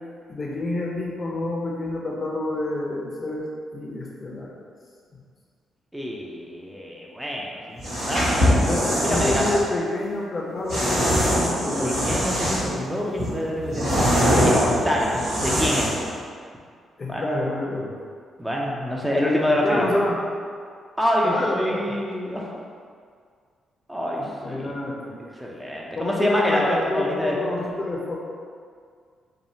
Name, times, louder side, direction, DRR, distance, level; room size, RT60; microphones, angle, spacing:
voice 1, 0.3-3.5 3.7-4.7 8.5-12.0 17.0-17.9 19.5-20.2 21.2-21.9 24.2-25.2 25.9-28.2, left 2 dB, 40° left, -2 dB, 0.6 m, -28 dB
voice 2, 5.9-9.6 11.8-14.1 14.4-14.6 14.8-16.0 17.1-17.4 18.4-19.9 21.0-22.5 23.9-25.0 25.4-27.5, equal, 10° right, -3 dB, 0.6 m, -26 dB
sound 1, 7.8-9.6 10.7-12.8 13.2-16.1, equal, 75° right, 1.5 m, -22 dB
3.2 x 2.3 x 2.7 m, 2.1 s
supercardioid pair, 55°, 0 cm